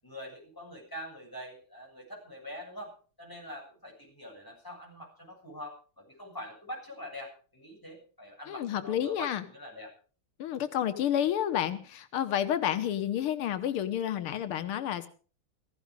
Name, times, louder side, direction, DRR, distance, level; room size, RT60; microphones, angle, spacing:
voice 1, 0.0-2.9 3.2-9.9, equal, 10° left, 0 dB, 7.7 m, -44 dB
voice 2, 8.5-9.4 10.4-15.1, left 10 dB, 90° left, 10 dB, 2.0 m, -30 dB
17.0 x 15.5 x 5.0 m, 0.41 s
omnidirectional pair, 2.3 m